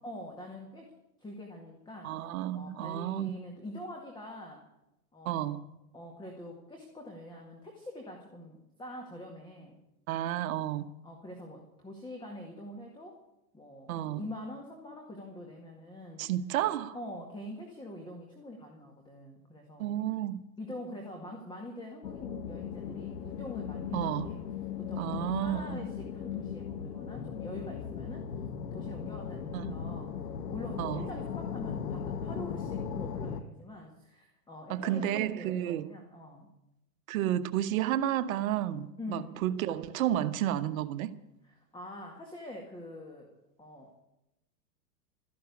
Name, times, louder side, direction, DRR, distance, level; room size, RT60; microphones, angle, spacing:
voice 1, 0.0-0.8 1.2-4.6 5.1-5.4 5.9-9.8 11.0-13.2 13.5-16.3 16.9-19.9 20.6-28.3 28.7-30.1 30.5-36.5 39.0-39.5 41.4-43.3 43.6-44.0, left 1 dB, 10° left, 2.0 m, -45 dB
voice 2, 2.0-3.3 5.2-5.6 10.1-10.9 13.9-14.2 16.2-16.9 19.8-20.4 23.9-24.3 25.0-25.8 29.5-29.7 30.8-31.1 34.7-35.9 37.1-41.1, right 12 dB, 60° right, 1.1 m, -31 dB
sound 1, 22.0-33.4, left 7 dB, 85° left, 1.6 m, -37 dB
13.5 x 11.0 x 8.5 m
hypercardioid pair, 130°, 47 cm